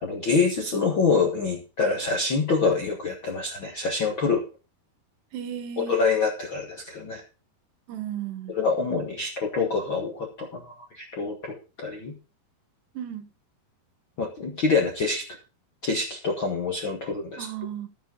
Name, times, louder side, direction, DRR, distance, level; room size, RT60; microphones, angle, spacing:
voice 1, 0.0-4.4 5.9-7.2 8.6-12.1 14.2-15.2 15.8-17.5, left 4 dB, 60° left, 1.2 m, -26 dB
voice 2, 5.3-6.0 7.9-8.6 13.0-13.3 17.4-17.9, right 10 dB, 90° right, 3.5 m, -34 dB
14.0 x 8.1 x 3.8 m
omnidirectional pair, 4.7 m